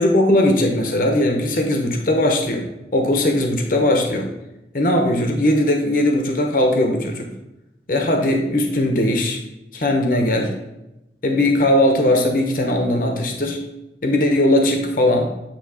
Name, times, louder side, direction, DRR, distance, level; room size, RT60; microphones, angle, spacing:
voice 1, 0.0-2.6 2.9-4.3 4.7-7.3 7.9-9.4 9.7-10.5 11.2-13.6 14.0-15.3, left 1 dB, 50° left, 2 dB, 1.0 m, -19 dB
9.2 x 3.1 x 4.9 m, 0.93 s
head